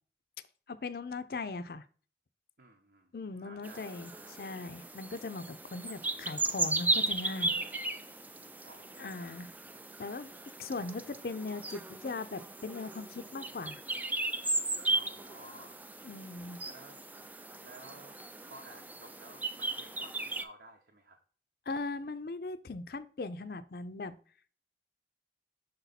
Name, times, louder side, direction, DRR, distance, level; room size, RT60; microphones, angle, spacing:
voice 1, 0.7-1.8 3.1-7.6 9.0-9.5 10.0-10.3 10.6-13.8 16.0-16.6 21.7-24.2, left 3 dB, 55° left, 0.5 m, -39 dB
voice 2, 2.6-4.4 5.7-6.5 8.6-9.3 10.8-11.1 14.9-15.8 16.6-17.0 17.6-18.2 18.4-21.2, right 2 dB, 65° right, 0.9 m, -55 dB
sound 1, 3.6-20.4, right 2 dB, 10° right, 0.3 m, -36 dB
6.5 x 4.1 x 4.0 m
head